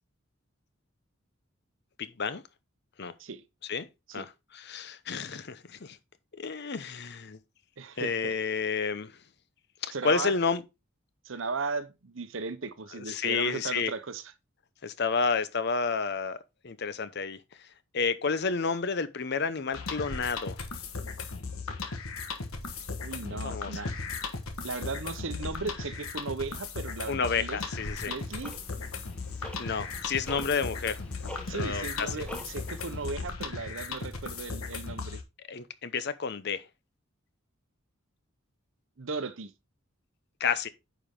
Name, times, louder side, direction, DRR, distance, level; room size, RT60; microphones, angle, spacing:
voice 1, 2.0-2.4 3.0-3.1 3.7-3.9 4.1-6.0 6.4-7.4 8.0-9.1 9.8-10.6 12.9-13.9 14.8-16.4 16.6-17.4 17.9-20.6 23.3-23.8 27.1-28.1 29.6-31.0 31.5-32.1 35.5-36.6 40.4-40.7, left 5 dB, 50° left, 0.7 m, -30 dB
voice 2, 7.8-8.3 9.9-10.4 11.2-14.3 23.0-23.9 24.6-27.6 28.1-28.5 31.5-35.2 39.0-39.5, right 4 dB, 65° right, 0.8 m, -36 dB
sound 1, 19.7-35.2, left 4 dB, 90° left, 1.4 m, -37 dB
Tick-tock, 27.6-33.1, equal, 5° left, 1.2 m, -46 dB
9.4 x 5.1 x 3.6 m
head